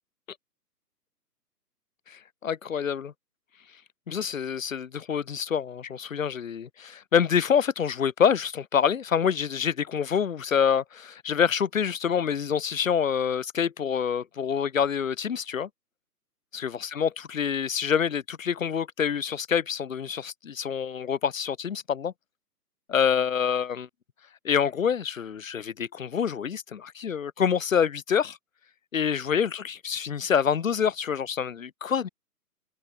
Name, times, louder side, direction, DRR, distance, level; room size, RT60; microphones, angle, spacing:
voice 1, 2.1-3.1 4.1-15.7 16.5-22.1 22.9-23.9 24.4-28.4 28.9-32.1, left 7 dB, 55° left, 3.5 m, -26 dB
figure-of-eight pair, 135°, 49 cm